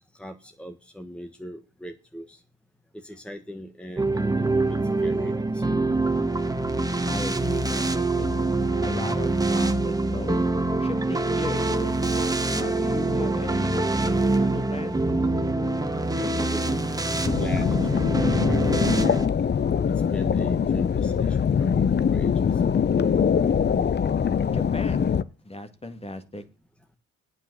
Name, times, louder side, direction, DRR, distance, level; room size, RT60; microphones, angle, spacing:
voice 1, 0.2-2.4 2.9-5.8 16.2-16.8 17.4-19.2 19.9-22.5, equal, 5° left, 6 dB, 1.5 m, -40 dB
sound 1, 4.0-19.3, right 2 dB, 10° right, 1.7 m, -25 dB
voice 2, 7.1-8.3 8.8-10.4 10.8-11.9 12.5-15.0 24.5-25.1 25.4-26.4, left 2 dB, 20° left, 10 dB, 2.0 m, -37 dB
sound 2, 17.3-25.2, left 7 dB, 35° left, 0.8 m, -23 dB
9.2 x 8.1 x 7.9 m, 0.31 s
cardioid pair, 90°, 30 cm